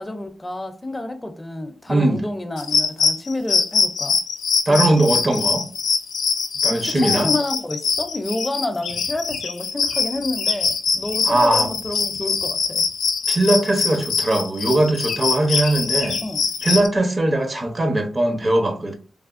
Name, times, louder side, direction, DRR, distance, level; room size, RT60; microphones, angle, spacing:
voice 1, 0.0-4.2 4.7-4.9 6.7-12.8 16.2-16.5, left 2 dB, 25° left, 0.5 m, -29 dB
voice 2, 1.9-2.2 4.7-5.6 6.6-7.3 11.2-11.7 13.3-16.2 16.6-18.9, right 1 dB, 45° right, 0.8 m, -20 dB
sound 1, 2.6-16.9, left 5 dB, 85° left, 0.4 m, -23 dB
3.3 x 2.2 x 2.4 m
supercardioid pair, 45°, 0 cm